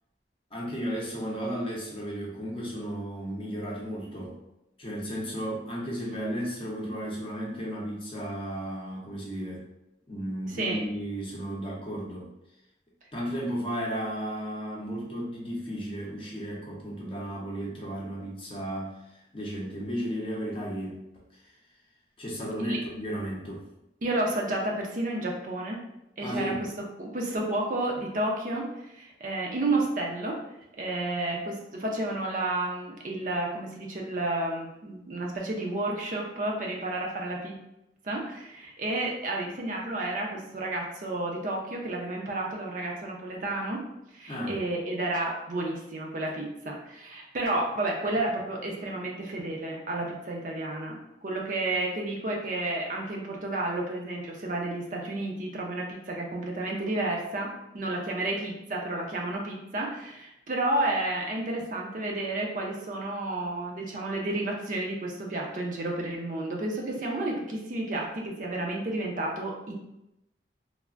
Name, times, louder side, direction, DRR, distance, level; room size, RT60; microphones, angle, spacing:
voice 1, 0.5-4.4 4.8-9.6 10.1-12.3 13.1-19.0 19.3-21.0 21.4-21.5 22.2-23.6 26.2-26.6 44.3-44.6, equal, 30° left, -3 dB, 0.6 m, -34 dB
voice 2, 24.0-25.8 26.2-26.7 27.0-30.4 30.8-37.5 38.0-43.8 44.1-69.7, right 2 dB, 45° right, -1 dB, 0.4 m, -31 dB
3.2 x 2.0 x 2.4 m, 0.85 s
head